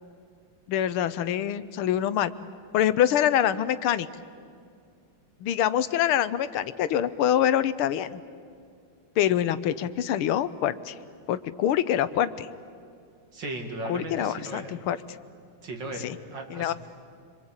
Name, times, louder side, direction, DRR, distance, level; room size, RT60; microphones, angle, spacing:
voice 1, 0.7-2.3 2.7-4.1 5.4-8.2 9.2-11.0 11.3-12.5 13.9-15.0 16.0-16.2 16.5-16.7, left 10 dB, 80° left, 14 dB, 1.7 m, -25 dB
voice 2, 13.3-14.7 15.6-16.7, right 2 dB, 55° right, 4 dB, 3.0 m, -36 dB
26.5 x 25.5 x 8.8 m, 2.3 s
omnidirectional pair, 2.3 m